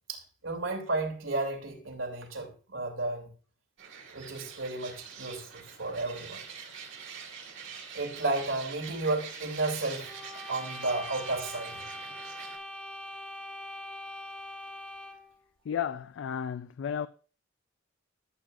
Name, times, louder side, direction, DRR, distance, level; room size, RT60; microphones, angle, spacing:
voice 1, 0.1-3.3 4.1-6.4 7.9-10.1 10.5-11.8, right 2 dB, 90° right, 2.4 m, -33 dB
birds and ducks in a river, 3.8-12.6, right 6 dB, 65° right, 2.0 m, -45 dB
sound 1, 10.0-15.3, left 1 dB, 10° left, 1.3 m, -42 dB
voice 2, 15.6-17.1, left 8 dB, 70° left, 0.3 m, -33 dB
13.5 x 7.5 x 2.4 m
head